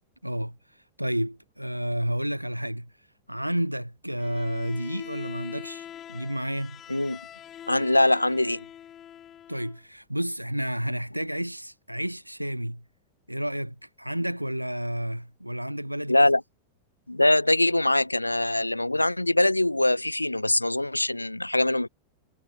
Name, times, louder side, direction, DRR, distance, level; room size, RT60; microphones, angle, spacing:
voice 1, 0.2-0.6 1.0-2.9 3.3-6.8 9.5-12.8 13.3-16.3, equal, 90° right, 0.4 m, -31 dB
Bowed string instrument, 4.2-9.8, left 10 dB, 30° left, 1.8 m, -43 dB
voice 2, 7.7-8.6 16.1-16.4 17.1-21.9, left 1 dB, 85° left, 0.5 m, -23 dB
figure-of-eight pair, 90°, 0 cm